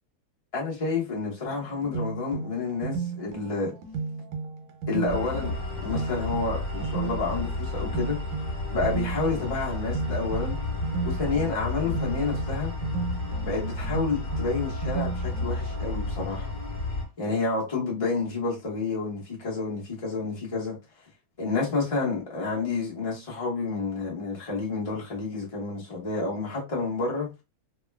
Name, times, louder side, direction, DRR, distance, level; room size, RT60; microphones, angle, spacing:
voice 1, 0.5-3.8 4.9-8.2 8.7-10.6 11.0-12.7 13.4-16.5 17.2-20.8 21.4-27.3, left 4 dB, 55° left, 0.4 m, -29 dB
sound 1, 1.5-16.3, right 5 dB, 90° right, 1.6 m, -35 dB
sound 2, 5.1-17.0, left 2 dB, 30° left, 0.9 m, -32 dB
3.5 x 2.3 x 2.2 m
omnidirectional pair, 2.4 m